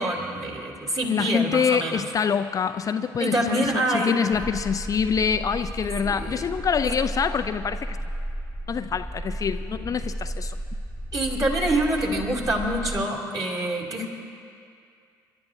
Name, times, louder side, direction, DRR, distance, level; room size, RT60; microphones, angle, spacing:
voice 1, 0.0-2.0 3.2-4.1 6.0-6.4 6.8-6.9 11.1-14.1, right 1 dB, 35° right, -2 dB, 3.0 m, -26 dB
voice 2, 1.1-8.0 8.7-10.6, left 6 dB, 35° left, 10 dB, 0.4 m, -26 dB
sound 1, 4.3-13.0, right 1 dB, 20° right, 1.7 m, -33 dB
29.5 x 12.0 x 2.7 m, 2.4 s
figure-of-eight pair, 45°, 10 cm